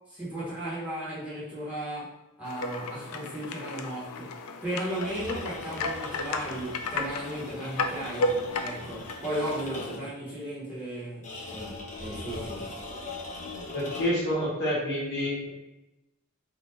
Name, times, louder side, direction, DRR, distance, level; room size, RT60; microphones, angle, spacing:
voice 1, 0.1-4.4 4.6-12.7, right 1 dB, 5° right, -10 dB, 1.2 m, -36 dB
sound 1, 2.4-10.0, left 2 dB, 70° left, 0.3 m, -34 dB
sound 2, 4.9-10.2 11.2-14.3, left 3 dB, 35° left, 0.6 m, -41 dB
voice 2, 13.7-15.5, equal, 50° left, -6 dB, 1.1 m, -28 dB
2.8 x 2.6 x 3.5 m, 0.97 s
head